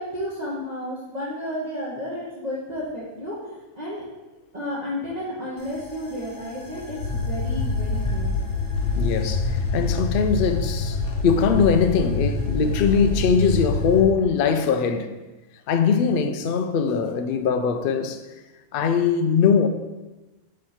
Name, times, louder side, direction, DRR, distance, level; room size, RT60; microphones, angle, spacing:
voice 1, 0.0-4.0 4.5-8.3, left 1 dB, 30° right, 1.2 m, -32 dB
sound 1, 5.6-14.1, left 3 dB, 60° left, 1.1 m, -26 dB
voice 2, 8.9-15.1 15.7-18.2 18.7-19.7, left 6 dB, 75° left, 0.5 m, -21 dB
6.6 x 3.1 x 5.6 m
omnidirectional pair, 1.5 m